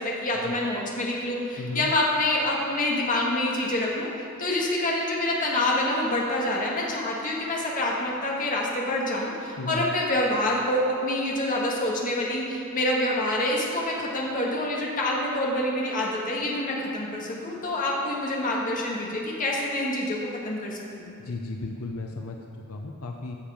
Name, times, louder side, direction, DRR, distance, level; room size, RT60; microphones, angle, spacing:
voice 1, 0.0-4.1 4.4-20.2 20.4-20.8 21.1-21.2, left 1 dB, 40° left, -3 dB, 1.9 m, -26 dB
voice 2, 1.6-1.9 9.6-9.9 21.2-23.4, left 2 dB, 75° left, 2 dB, 0.7 m, -35 dB
14.0 x 7.2 x 5.1 m, 2.6 s
head